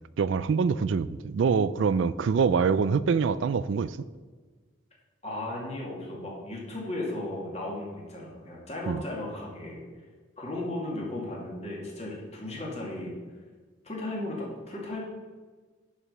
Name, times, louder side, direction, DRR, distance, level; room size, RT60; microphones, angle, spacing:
voice 1, 0.2-4.0 8.9-9.0, right 5 dB, 75° right, 0.4 m, -25 dB
voice 2, 5.2-9.8 10.4-13.2 13.8-15.0, left 1 dB, 35° left, 2.3 m, -35 dB
11.0 x 5.0 x 5.5 m
head